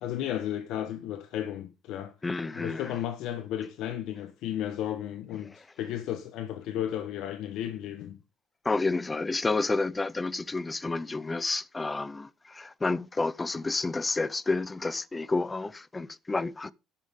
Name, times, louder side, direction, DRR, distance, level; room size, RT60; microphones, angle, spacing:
voice 1, 0.0-2.1 2.5-8.2, left 11 dB, 65° left, 1.4 m, -34 dB
voice 2, 2.2-2.9 8.6-16.7, left 3 dB, 15° left, 0.7 m, -30 dB
13.0 x 12.0 x 3.8 m
cardioid pair, 155°, 0 cm